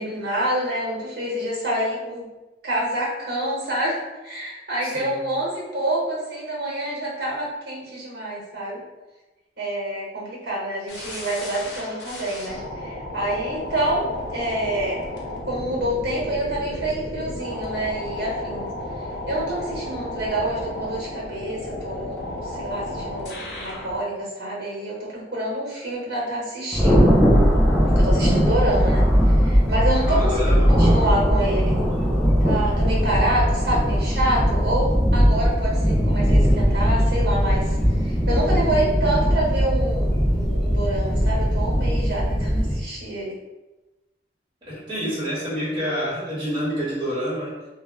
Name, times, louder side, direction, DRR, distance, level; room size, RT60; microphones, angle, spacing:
voice 1, 0.0-2.3 2.6-8.8 9.6-15.0 15.4-18.7 19.3-27.1 27.9-31.8 32.4-37.8 38.0-43.3, right 1 dB, 60° right, -5 dB, 0.9 m, -27 dB
voice 2, 4.8-5.2 30.0-31.0 44.7-47.6, equal, 25° right, -8 dB, 1.0 m, -28 dB
sound 1, 10.9-24.0, left 1 dB, 70° left, 0.6 m, -33 dB
Thunder, 26.7-42.7, equal, 5° left, 0.4 m, -19 dB
2.1 x 2.0 x 3.5 m, 1.1 s
head